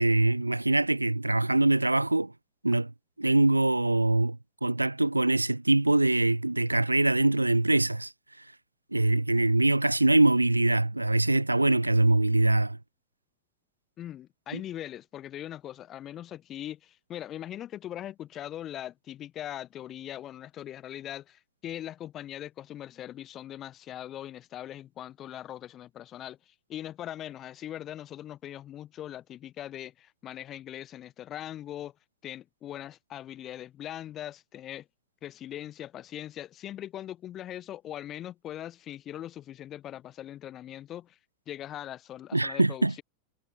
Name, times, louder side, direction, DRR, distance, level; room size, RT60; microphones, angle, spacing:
voice 1, 0.0-2.3 2.6-2.9 3.2-8.1 8.9-12.8 14.5-14.6 42.3-43.0, right 2 dB, 85° right, 0.3 m, -23 dB
voice 2, 14.0-31.9 32.2-34.9 35.2-41.2 41.5-43.0, left 12 dB, 30° left, 2.2 m, -41 dB
figure-of-eight pair, 90°, 0 cm